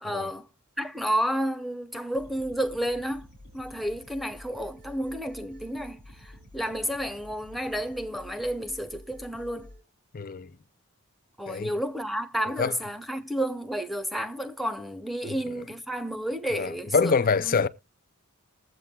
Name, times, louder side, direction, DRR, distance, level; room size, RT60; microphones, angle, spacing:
voice 1, 0.0-0.5 0.8-3.3 3.5-9.7 11.4-17.6, equal, ahead, 0.6 m, -31 dB
sound 1, 2.1-9.8, left 1 dB, 50° right, 7.7 m, -49 dB
voice 2, 10.1-10.5 11.5-11.7 12.6-12.7 15.2-15.3 16.5-17.7, left 5 dB, 40° left, 0.4 m, -25 dB
21.0 x 7.9 x 2.3 m
head